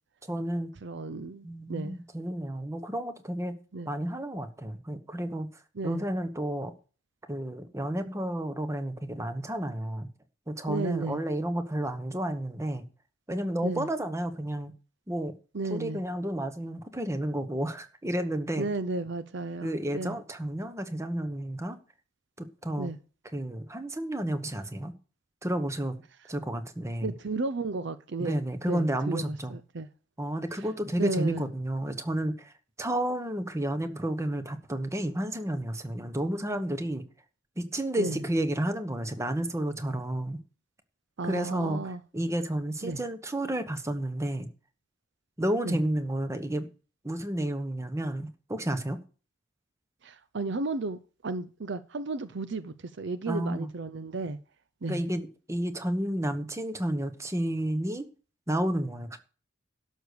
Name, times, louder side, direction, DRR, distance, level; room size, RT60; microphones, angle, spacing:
voice 1, 0.3-0.7 1.4-3.5 3.8-5.5 5.8-6.7 7.3-10.1 10.5-12.8 13.3-14.7 15.1-15.3 15.7-18.7 19.6-21.8 22.4-22.9 23.3-24.9 25.4-26.0 26.3-27.1 28.2-29.6 30.2-32.5 32.8-37.0 37.6-40.4 41.2-41.8 42.1-44.5 45.4-46.7 47.0-49.0 53.3-53.7 54.9-58.1 58.5-59.2, right 1 dB, 15° right, 1.1 m, -31 dB
voice 2, 0.8-2.0 3.7-3.9 5.8-6.0 10.7-11.3 13.6-13.9 15.5-16.0 18.6-20.2 22.8-23.0 27.0-29.9 31.0-31.5 38.0-38.2 41.2-42.0 42.8-43.0 45.6-45.8 50.0-54.4 54.8-55.0, right 3 dB, 60° right, 0.6 m, -34 dB
12.0 x 6.4 x 6.8 m
head